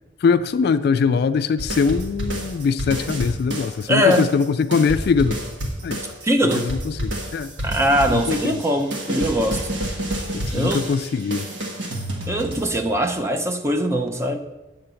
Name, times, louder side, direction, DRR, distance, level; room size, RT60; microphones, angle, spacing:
voice 1, 0.2-5.4 5.8-6.0 6.4-7.5 8.1-8.6 10.3-11.5, left 5 dB, 60° left, 13 dB, 0.3 m, -22 dB
sound 1, 1.6-13.1, right 1 dB, 75° right, 1.6 m, -29 dB
voice 2, 3.9-4.3 6.2-6.7 7.6-9.7 10.5-10.9 12.3-14.4, equal, 15° right, 4 dB, 0.6 m, -21 dB
8.7 x 3.9 x 6.9 m, 1.1 s
head